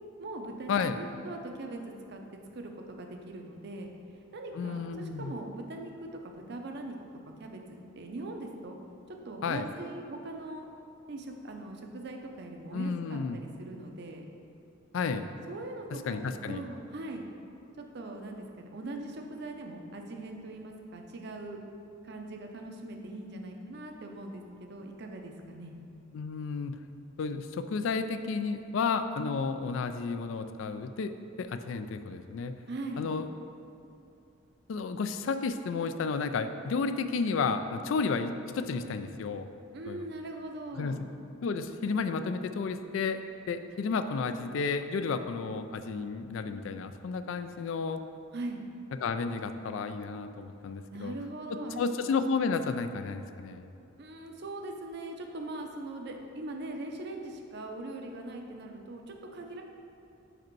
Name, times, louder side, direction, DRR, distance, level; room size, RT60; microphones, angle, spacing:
voice 1, 0.2-2.2 2.5-3.9 4.3-7.0 7.4-8.8 9.1-10.7 11.1-14.3 15.5-17.2 17.8-21.6 22.0-24.4 24.7-25.7 32.7-33.0 39.7-41.0 48.3-48.6 50.9-52.0 54.0-59.6, right 2 dB, 55° right, 3 dB, 0.6 m, -41 dB
voice 2, 4.6-5.3 9.4-9.7 12.7-13.4 14.9-15.3 15.9-16.6 26.1-26.8 27.2-31.1 31.4-32.5 33.0-33.3 34.7-39.5 39.9-40.0 40.8-41.0 41.4-43.2 43.5-48.0 49.0-51.1 51.8-53.7, left 4 dB, 65° left, 9 dB, 0.3 m, -32 dB
5.2 x 5.0 x 4.6 m, 2.7 s
head